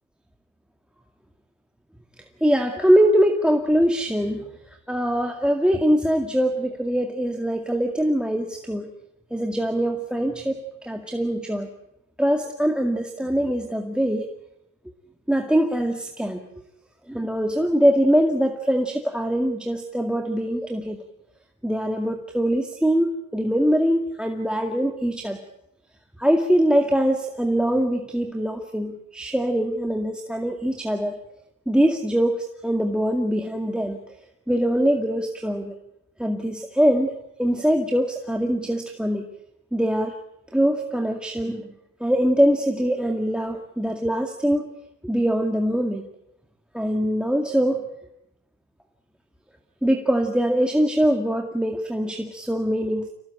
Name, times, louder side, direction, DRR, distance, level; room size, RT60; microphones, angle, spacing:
voice 1, 2.2-8.9 9.3-11.7 12.2-14.3 15.3-16.4 17.1-21.0 21.6-25.4 26.2-31.2 31.7-34.0 34.5-35.7 36.2-37.1 37.4-39.3 39.7-40.1 40.5-41.6 42.0-44.7 45.0-46.1 46.7-47.8 49.8-53.1, equal, 5° right, 6 dB, 2.1 m, -23 dB
25.5 x 17.5 x 8.9 m, 0.82 s
supercardioid pair, 80°, 36 cm